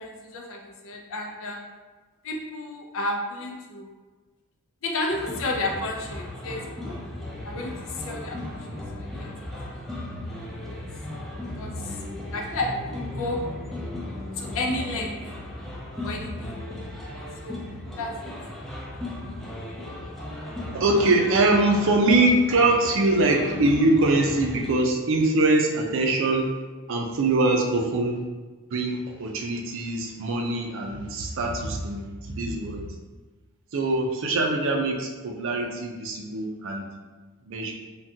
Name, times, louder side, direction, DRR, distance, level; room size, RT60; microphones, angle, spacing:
voice 1, 0.0-1.6 2.2-3.9 4.8-7.0 7.4-9.3 10.7-10.9 11.6-12.0 12.3-13.4 14.4-15.2 16.0-16.6 17.2-17.6 18.0-18.3, left 2 dB, 65° left, 1 dB, 0.5 m, -32 dB
sound 1, 5.1-24.7, left 1 dB, ahead, 0.4 m, -36 dB
voice 2, 20.7-26.5 26.9-28.2 28.7-32.9 33.7-36.9 37.5-37.7, right 2 dB, 60° right, 1 dB, 0.5 m, -23 dB
3.5 x 2.3 x 2.7 m, 1.3 s
head